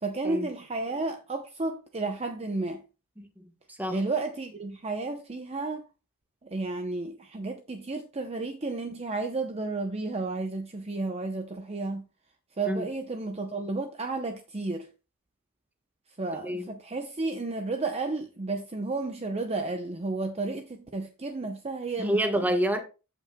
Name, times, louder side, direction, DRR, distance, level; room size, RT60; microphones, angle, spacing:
voice 1, 0.0-2.8 3.9-5.9 6.4-12.1 12.6-14.9 16.2-22.5, right 3 dB, 30° right, 0.7 m, -32 dB
voice 2, 3.2-4.0 12.7-12.9 16.4-16.7 22.0-22.8, equal, 10° right, 1.2 m, -28 dB
15.0 x 5.6 x 2.2 m
head